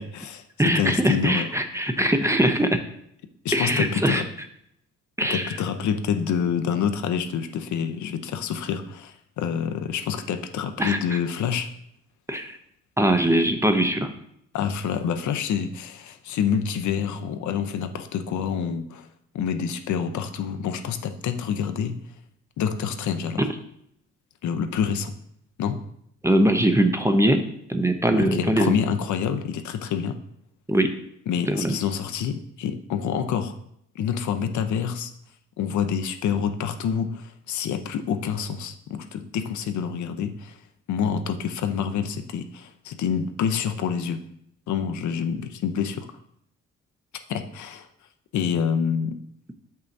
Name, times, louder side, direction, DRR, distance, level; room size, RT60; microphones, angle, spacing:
voice 1, 0.0-0.4 0.7-1.5 3.4-4.2 5.3-11.7 14.5-19.1 19.3-22.0 22.6-23.5 24.4-25.2 25.6-25.8 28.2-30.2 31.3-33.6 33.9-35.1 35.6-40.6 40.9-44.2 44.7-46.1 47.3-47.9 48.3-49.2, left 7 dB, 70° left, 8 dB, 0.7 m, -27 dB
voice 2, 0.6-2.8 3.5-4.2 5.2-5.6 10.8-11.2 12.3-12.6 13.0-14.1 23.4-23.5 26.2-28.7 30.7-30.9 31.5-31.8, right 1 dB, 10° right, 6 dB, 0.6 m, -21 dB
7.1 x 5.5 x 2.7 m, 0.73 s
cardioid pair, 90°, 30 cm